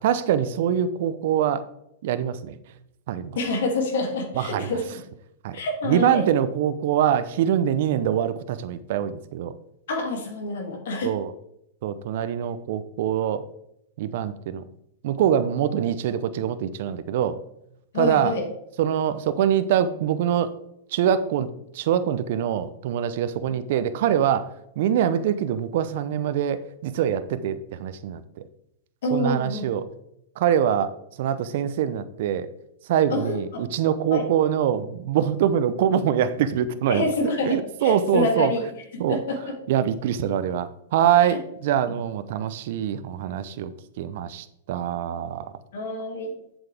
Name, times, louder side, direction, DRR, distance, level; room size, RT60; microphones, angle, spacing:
voice 1, 0.0-1.6 2.0-2.6 3.1-3.4 4.4-4.8 5.4-9.5 11.0-11.3 11.8-13.4 14.0-14.6 15.0-17.4 17.9-18.3 18.8-20.5 20.9-21.5 21.7-24.5 24.8-28.2 29.1-29.9 30.4-30.9 31.2-32.5 32.9-37.0 37.4-38.5 39.0-39.2 39.7-45.5, right 9 dB, 60° right, 13 dB, 0.6 m, -24 dB
voice 2, 3.3-5.0 5.5-6.3 9.9-11.1 17.9-18.4 29.0-29.6 33.1-33.6 34.1-34.3 36.9-38.6 38.9-39.6 41.3-41.4 45.7-46.4, left 2 dB, 70° left, 2 dB, 2.5 m, -27 dB
8.0 x 7.7 x 3.4 m, 0.76 s
hypercardioid pair, 120°, 0 cm